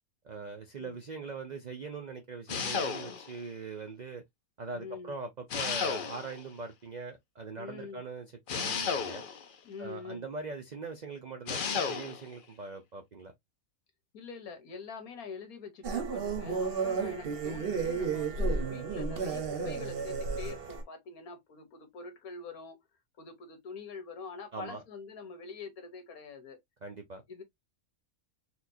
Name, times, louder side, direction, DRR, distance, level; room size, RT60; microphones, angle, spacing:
voice 1, 0.2-4.2 4.6-9.2 9.8-13.3 24.5-24.8 26.8-27.2, right 4 dB, 75° right, 0.4 m, -42 dB
sound 1, 2.5-3.4 5.5-6.5 8.5-9.5 11.5-12.3, left 6 dB, 55° left, 0.6 m, -33 dB
voice 2, 4.7-5.1 7.6-8.0 9.6-10.3 14.1-22.8 23.2-26.6 27.3-27.4, left 5 dB, 80° left, 1.5 m, -45 dB
sound 2, 15.8-20.8, right 4 dB, 50° right, 0.9 m, -32 dB
4.3 x 2.3 x 2.6 m
omnidirectional pair, 1.5 m